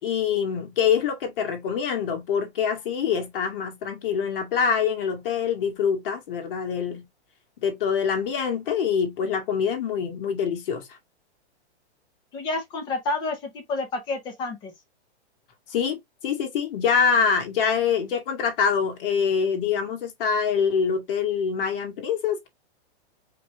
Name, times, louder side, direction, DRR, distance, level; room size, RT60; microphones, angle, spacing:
voice 1, 0.0-7.1 7.6-11.0 15.7-16.0 16.2-22.5, left 6 dB, 55° left, 2.0 m, -25 dB
voice 2, 12.3-14.7, left 3 dB, 15° left, 0.7 m, -29 dB
5.1 x 3.2 x 3.0 m
hypercardioid pair, 170°, 33 cm